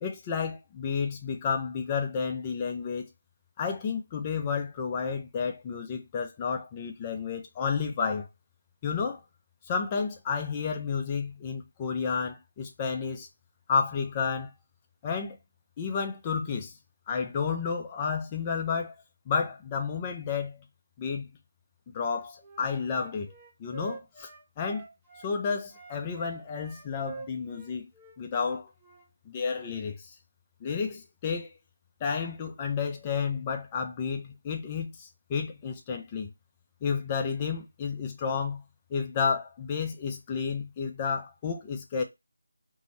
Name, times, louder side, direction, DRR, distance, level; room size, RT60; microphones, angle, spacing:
voice 1, 0.0-3.1 3.6-8.3 8.8-9.2 9.7-13.3 13.7-14.5 15.0-15.4 15.8-16.7 17.1-18.9 19.3-20.6 21.0-21.3 21.9-23.3 23.6-24.3 24.6-24.9 25.2-27.9 28.2-28.7 29.3-30.0 30.6-31.5 32.0-36.3 36.8-38.6 38.9-42.0, left 5 dB, 20° left, 0.5 m, -31 dB
Wind instrument woodwind instrument, 22.0-25.3 25.7-29.1, right 4 dB, 15° right, 0.7 m, -46 dB
2.7 x 2.6 x 3.0 m
figure-of-eight pair, 160°, 0 cm